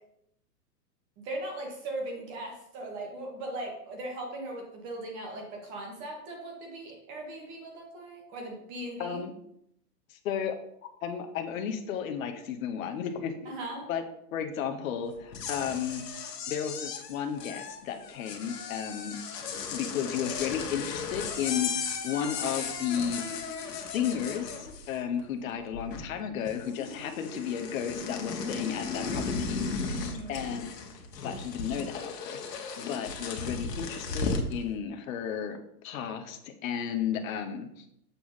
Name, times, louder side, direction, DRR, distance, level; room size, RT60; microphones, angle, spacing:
voice 1, 1.2-9.2 13.4-13.9 29.9-30.4, right 1 dB, 25° right, 1 dB, 1.2 m, -39 dB
voice 2, 9.0-9.3 10.1-10.6 11.0-13.5 13.9-14.0 14.3-16.1 16.5-19.2 19.7-35.6 35.8-37.8, left 8 dB, 55° left, 5 dB, 0.9 m, -34 dB
sound 1, 15.2-25.2 25.5-26.2 26.5-34.5, left 5 dB, 80° left, 1.3 m, -36 dB
7.0 x 3.0 x 5.5 m, 0.74 s
hypercardioid pair, 155°, 48 cm